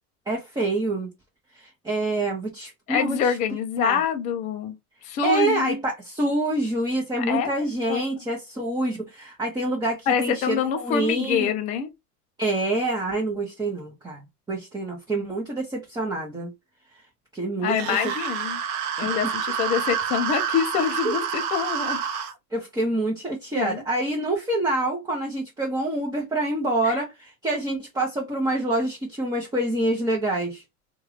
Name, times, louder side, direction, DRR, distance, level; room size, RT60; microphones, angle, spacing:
voice 1, 0.3-1.1 1.5-3.4 3.8-4.0 5.2-11.5 12.4-14.2 14.5-16.5 16.9-17.0 17.3-18.1 21.0-21.2 22.5-30.6, right 2 dB, 10° right, 0.8 m, -26 dB
voice 2, 2.9-4.8 5.0-5.8 7.2-7.5 7.9-8.0 10.1-11.9 17.6-18.6 19.0-22.0 23.5-23.8 26.8-27.0, left 8 dB, 20° left, 0.3 m, -25 dB
sound 1, 17.7-22.3, right 7 dB, 45° right, 0.7 m, -28 dB
2.8 x 2.5 x 3.1 m
hypercardioid pair, 105°, 47 cm